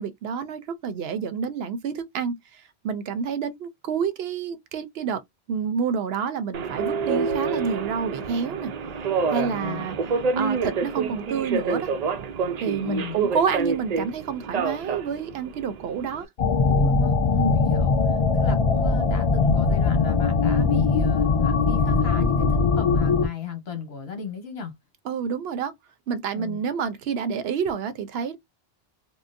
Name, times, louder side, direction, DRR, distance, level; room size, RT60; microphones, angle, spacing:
voice 1, 0.0-5.2 5.5-8.7 9.3-10.0 10.4-11.9 12.6-16.3 17.3-17.6 25.0-25.7 26.1-28.4, right 6 dB, 80° right, 0.8 m, -28 dB
Subway metro underground, 6.5-16.2, right 5 dB, 55° right, 0.5 m, -28 dB
voice 2, 9.3-10.0 12.8-13.2 16.4-24.7 26.3-26.6, left 5 dB, 80° left, 1.3 m, -36 dB
sound 1, 16.4-23.3, left 4 dB, 55° left, 0.4 m, -21 dB
3.7 x 2.0 x 2.5 m
omnidirectional pair, 1.0 m